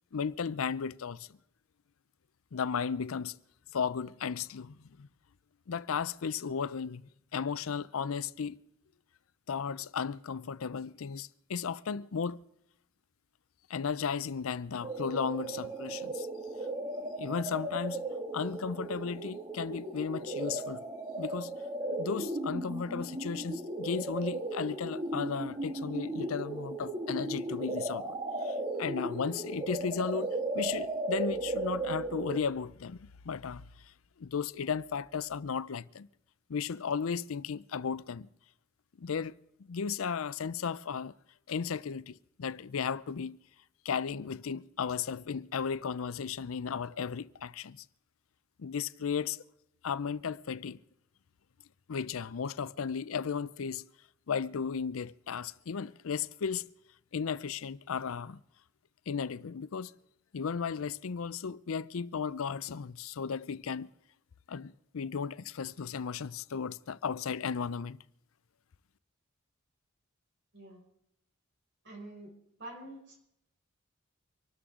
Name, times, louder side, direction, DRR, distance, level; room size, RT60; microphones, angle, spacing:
voice 1, 0.1-1.3 2.5-3.4 3.7-5.1 5.7-7.0 7.3-8.6 9.5-12.4 13.7-16.3 17.2-18.1 18.3-20.8 21.2-21.5 21.9-28.1 28.4-30.3 30.5-36.1 36.5-38.3 39.0-39.3 39.6-41.1 41.5-43.4 43.8-47.8 48.6-49.4 49.8-50.8 51.9-53.8 54.3-56.7 57.1-58.4 59.1-59.9 60.3-63.9 64.5-68.0, left 6 dB, 75° left, 0.5 m, -35 dB
sound 1, 14.8-32.4, right 2 dB, 25° right, 1.4 m, -36 dB
voice 2, 71.8-72.3 72.6-73.2, right 1 dB, 60° right, 5.6 m, -46 dB
25.0 x 13.0 x 3.7 m
head